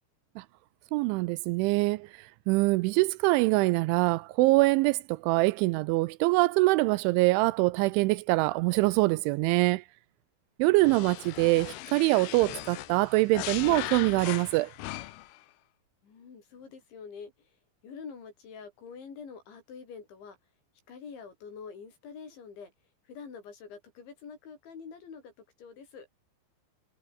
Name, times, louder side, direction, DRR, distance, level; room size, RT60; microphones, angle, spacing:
voice 1, 0.9-9.8 10.6-14.7, right 22 dB, 85° right, 2.9 m, -24 dB
sound 1, 10.8-15.4, left 16 dB, 85° left, 2.3 m, -39 dB
voice 2, 16.0-17.6 17.8-20.4 20.9-22.7 23.1-25.3 25.6-26.1, left 6 dB, 65° left, 8.1 m, -46 dB
omnidirectional pair, 5.6 m